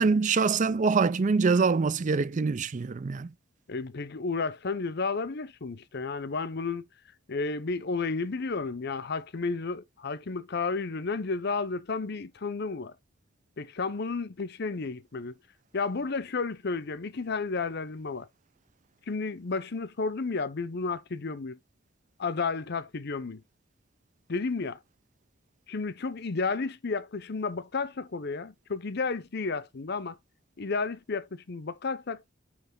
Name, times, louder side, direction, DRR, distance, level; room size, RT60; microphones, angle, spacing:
voice 1, 0.0-3.3, right 4 dB, 40° right, 0.4 m, -24 dB
voice 2, 3.7-6.8 7.3-12.9 13.6-15.3 15.7-18.3 19.1-21.6 22.2-23.4 24.3-24.8 25.7-30.2 30.6-32.2, left 4 dB, 55° left, 0.8 m, -32 dB
9.4 x 3.1 x 3.8 m
head